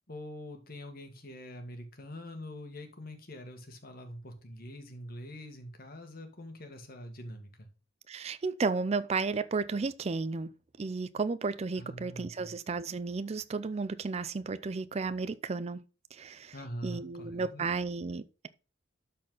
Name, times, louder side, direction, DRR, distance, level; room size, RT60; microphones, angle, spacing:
voice 1, 0.1-7.7 11.8-12.5 16.5-17.7, equal, 50° left, 1.7 m, -44 dB
voice 2, 8.1-10.5 10.8-15.8 16.1-16.5 16.8-18.5, right 4 dB, 35° right, 0.4 m, -33 dB
12.5 x 4.4 x 3.9 m
head